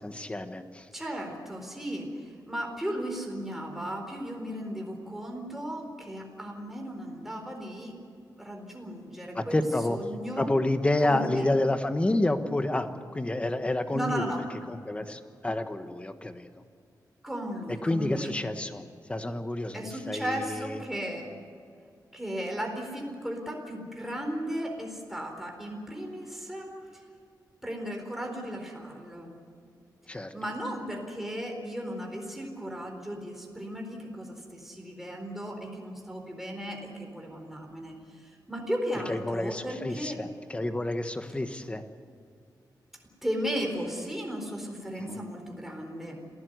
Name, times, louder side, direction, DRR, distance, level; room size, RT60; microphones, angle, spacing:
voice 1, 0.0-0.9 9.3-10.0 10.4-14.3 14.7-16.6 17.8-18.8 19.1-20.8 30.1-30.3 39.1-41.8 44.9-45.2, left 1 dB, 15° left, 8 dB, 1.3 m, -29 dB
voice 2, 0.9-7.9 8.4-9.6 9.9-10.5 11.0-11.5 13.9-14.4 17.2-18.3 19.7-21.3 22.1-27.0 27.6-29.3 30.3-37.9 38.2-40.2 43.2-46.2, equal, 5° right, 1 dB, 4.1 m, -35 dB
27.0 x 16.5 x 8.1 m, 2.3 s
wide cardioid pair, 145°, 7 cm